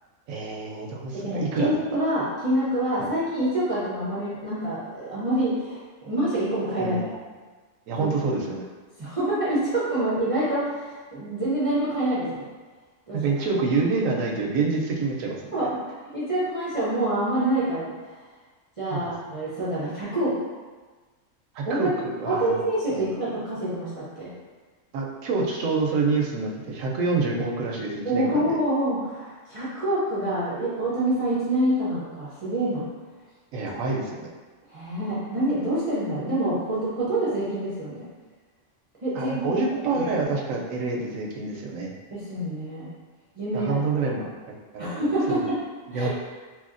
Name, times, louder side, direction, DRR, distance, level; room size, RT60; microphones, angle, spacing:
voice 1, 0.3-1.8 3.0-3.1 6.8-7.1 7.9-8.7 13.1-15.4 18.9-19.4 21.5-22.5 22.9-23.1 24.9-28.6 33.5-34.3 39.1-41.9 43.5-45.5 45.9-46.1, right 4 dB, 90° right, -1 dB, 1.0 m, -27 dB
voice 2, 1.1-7.0 8.0-8.1 9.0-12.4 13.1-13.2 15.5-15.8 16.1-17.9 18.8-20.4 21.7-22.0 22.3-24.3 28.0-32.9 33.7-33.8 34.7-38.0 39.0-39.5 39.9-40.0 42.1-42.9 43.4-43.8 44.2-44.3 44.8-45.6 45.9-46.1, right 1 dB, 45° right, -9 dB, 0.4 m, -26 dB
3.0 x 2.7 x 2.5 m, 1.4 s
omnidirectional pair, 1.3 m